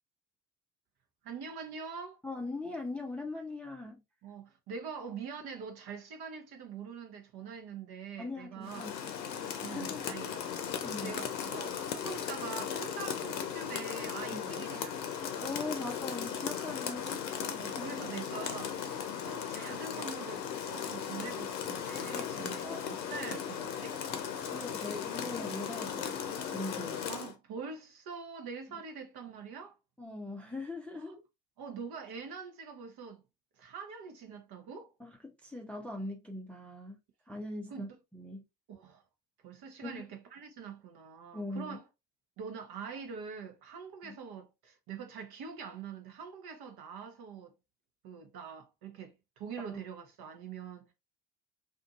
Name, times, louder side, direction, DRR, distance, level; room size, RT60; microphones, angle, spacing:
voice 1, 1.2-2.2 4.2-8.9 9.6-10.5 11.0-15.0 17.5-24.0 27.1-29.8 30.9-31.1 31.6-33.2 33.6-34.9 37.7-38.0 38.7-39.0 39.4-41.9 42.4-47.6 48.0-50.9, right 6 dB, 50° right, 0.9 m, -44 dB
voice 2, 2.2-4.0 8.2-8.9 9.7-10.2 10.8-11.1 14.3-14.7 15.4-17.2 17.7-18.0 22.1-23.0 24.5-26.2 26.5-27.0 30.0-31.2 35.0-35.2 35.4-37.0 37.3-38.4 39.8-40.0 41.3-41.8 44.0-44.1 49.6-49.8, left 2 dB, 5° left, 0.5 m, -41 dB
Rain, 8.6-27.3, left 8 dB, 90° left, 0.6 m, -37 dB
2.7 x 2.5 x 2.3 m
hypercardioid pair, 65°, 49 cm